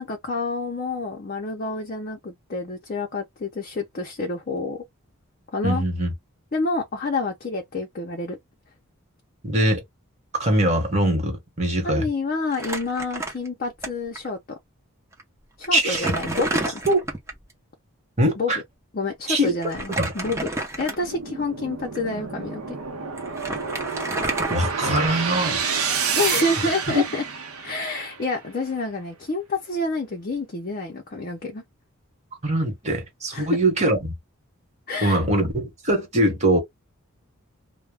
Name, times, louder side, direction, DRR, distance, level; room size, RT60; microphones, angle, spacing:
voice 1, 0.0-4.8 5.5-5.8 6.5-8.4 11.8-14.6 15.6-16.5 18.4-18.5 18.9-22.8 26.2-27.2 27.6-31.6 33.3-33.5 34.9-35.2, left 3 dB, 40° left, 0.5 m, -28 dB
voice 2, 5.6-6.1 9.4-9.8 10.4-12.1 15.7-16.2 16.9-17.0 18.2-18.6 19.3-19.5 20.0-20.1 24.5-25.7 26.9-27.0 32.4-34.1 35.0-36.6, right 1 dB, 30° right, 1.0 m, -22 dB
Crumpling crinkling, 12.5-13.9 14.2-14.3 15.1-15.2 15.6-17.4 19.6-21.2 21.8-22.0 22.9-23.0 23.2-25.3, right 2 dB, 10° right, 0.6 m, -31 dB
sound 1, 21.0-28.3, right 6 dB, 80° right, 0.6 m, -29 dB
2.2 x 2.1 x 3.3 m
head